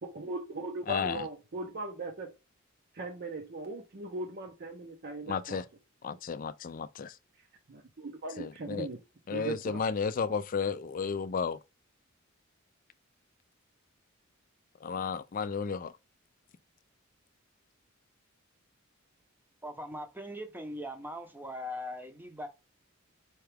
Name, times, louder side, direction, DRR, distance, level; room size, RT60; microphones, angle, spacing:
voice 1, 0.0-2.3 2.9-5.6 7.7-9.0 9.3-9.8, right 2 dB, 50° right, 0.6 m, -39 dB
voice 2, 0.9-1.3 5.3-5.6 6.0-7.2 8.4-8.9 9.3-11.6 14.8-15.9, left 5 dB, 40° left, 0.4 m, -33 dB
voice 3, 19.6-22.5, left 1 dB, 10° right, 0.7 m, -40 dB
4.4 x 2.3 x 3.3 m
head